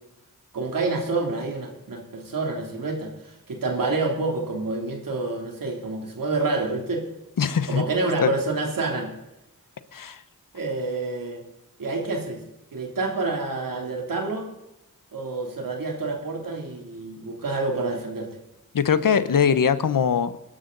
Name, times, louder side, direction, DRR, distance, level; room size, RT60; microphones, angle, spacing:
voice 1, 0.5-7.0 7.7-9.1 10.5-11.4 11.8-12.4 12.7-14.5 15.1-18.3, right 3 dB, 90° right, 2 dB, 3.1 m, -28 dB
voice 2, 7.4-7.8 8.2-8.3 9.9-10.2 18.7-20.4, left 7 dB, 80° left, 13 dB, 1.0 m, -21 dB
20.5 x 11.5 x 4.0 m, 0.90 s
cardioid pair, 45°, 32 cm